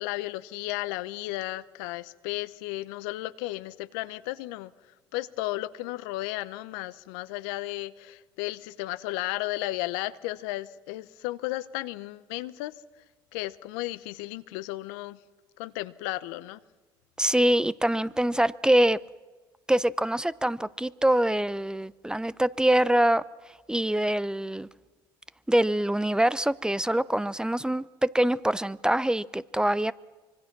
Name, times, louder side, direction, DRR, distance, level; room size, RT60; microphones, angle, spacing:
voice 1, 0.0-4.7 5.1-12.7 13.3-15.2 15.6-16.6, left 18 dB, 80° left, 0.8 m, -34 dB
voice 2, 17.2-19.0 19.7-23.2 23.7-24.7 25.5-29.9, right 1 dB, 5° right, 0.7 m, -24 dB
25.0 x 24.0 x 6.1 m
hypercardioid pair, 70°, 11 cm